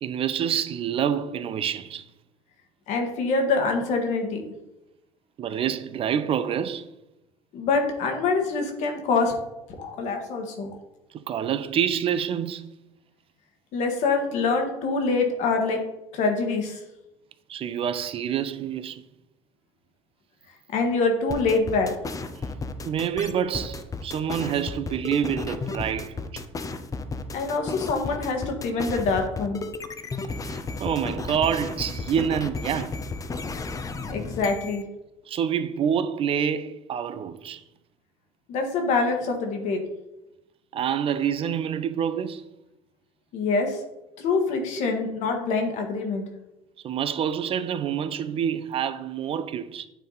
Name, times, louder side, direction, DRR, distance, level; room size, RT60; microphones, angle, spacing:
voice 1, 0.0-2.0 5.4-6.8 11.1-12.7 17.5-19.0 22.9-26.4 30.4-33.0 35.3-37.6 40.7-42.4 46.8-49.9, right 8 dB, 45° right, 0.5 m, -27 dB
voice 2, 2.9-4.4 7.5-9.3 9.8-10.7 13.7-15.8 16.1-16.8 20.7-21.9 27.3-29.6 34.1-34.9 38.5-39.8 43.3-43.8 44.2-46.3, left 4 dB, 65° left, 1.5 m, -25 dB
sound 1, 21.3-34.8, left 3 dB, 25° left, 0.6 m, -33 dB
9.1 x 3.5 x 4.1 m
supercardioid pair, 80°, 13 cm